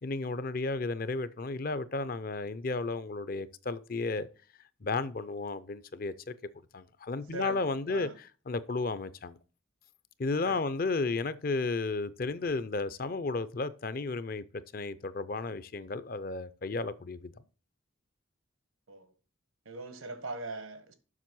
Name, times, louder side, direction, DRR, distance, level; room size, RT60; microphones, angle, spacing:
voice 1, 0.0-4.3 4.8-6.3 6.7-9.4 10.2-14.4 14.7-17.3, left 3 dB, 45° left, 0.5 m, -33 dB
voice 2, 19.6-20.9, right 2 dB, 85° right, 1.4 m, -40 dB
7.4 x 6.0 x 6.1 m
head